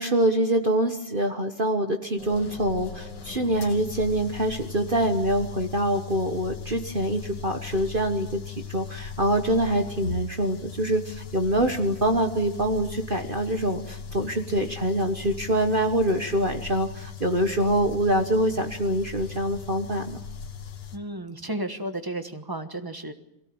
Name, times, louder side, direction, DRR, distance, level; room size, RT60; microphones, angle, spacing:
voice 1, 0.0-20.2, right 1 dB, 35° right, 5 dB, 1.3 m, -25 dB
sound 1, 2.2-21.0, left 7 dB, 80° left, 2.2 m, -39 dB
voice 2, 20.9-23.1, right 1 dB, 15° right, 8 dB, 1.1 m, -33 dB
23.0 x 17.0 x 8.8 m, 0.84 s
omnidirectional pair, 1.9 m